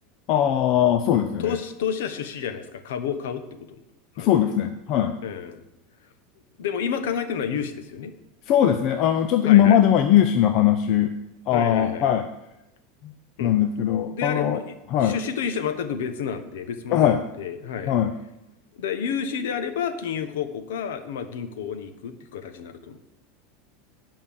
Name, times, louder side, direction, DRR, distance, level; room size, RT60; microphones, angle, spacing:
voice 1, 0.3-1.6 4.2-5.2 8.5-11.1 11.5-12.3 13.0-13.1 13.4-14.6 14.9-15.2 16.9-17.2 17.9-18.1, left 10 dB, 40° left, 7 dB, 0.6 m, -20 dB
voice 2, 1.4-3.4 4.2-4.3 5.2-5.6 6.6-8.1 9.5-9.8 11.5-12.1 13.4-13.5 14.1-14.7 15.0-17.9 18.8-23.0, left 7 dB, 85° left, 9 dB, 1.1 m, -30 dB
9.7 x 5.4 x 7.0 m, 0.90 s
supercardioid pair, 160°, 0 cm